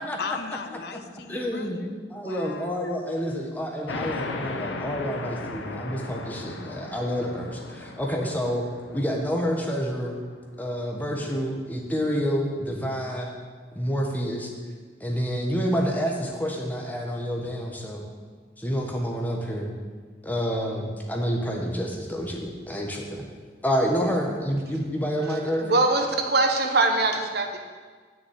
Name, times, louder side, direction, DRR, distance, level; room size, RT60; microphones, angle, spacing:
voice 1, 0.0-3.0, left 5 dB, 60° left, 10 dB, 0.6 m, -38 dB
voice 2, 1.3-1.8 2.1-8.6 8.9-10.2 10.6-13.4 13.7-14.5 15.0-18.0 18.6-19.7 20.2-23.2 23.6-25.7, equal, 10° left, 0 dB, 1.3 m, -28 dB
sound 1, 3.9-11.0, left 3 dB, 90° left, 0.8 m, -37 dB
voice 3, 25.2-27.6, right 2 dB, 60° right, 4 dB, 1.1 m, -23 dB
7.4 x 6.5 x 7.9 m, 1.5 s
head